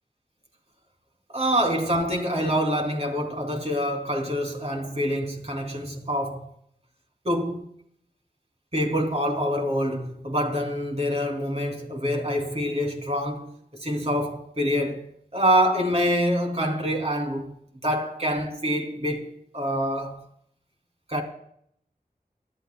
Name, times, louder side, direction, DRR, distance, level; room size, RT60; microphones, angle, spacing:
voice 1, 1.3-6.5 7.2-7.6 8.7-15.0 15.3-17.6 17.8-20.2 21.1-21.2, equal, 40° right, 2.8 m, -26 dB
19.5 x 12.5 x 2.2 m
wide cardioid pair, 45°, 16 cm